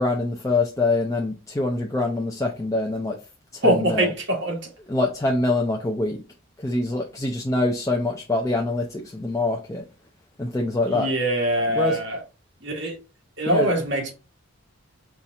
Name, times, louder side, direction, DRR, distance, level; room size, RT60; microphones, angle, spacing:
voice 1, 0.0-3.2 3.5-4.1 4.9-6.2 6.6-9.8 10.4-11.1 11.8-12.0 13.5-13.7, left 2 dB, 15° left, 0.4 m, -24 dB
voice 2, 3.6-4.7 10.9-12.2 12.6-13.0 13.4-14.1, right 1 dB, 55° right, 1.4 m, -23 dB
4.2 x 2.4 x 3.9 m
head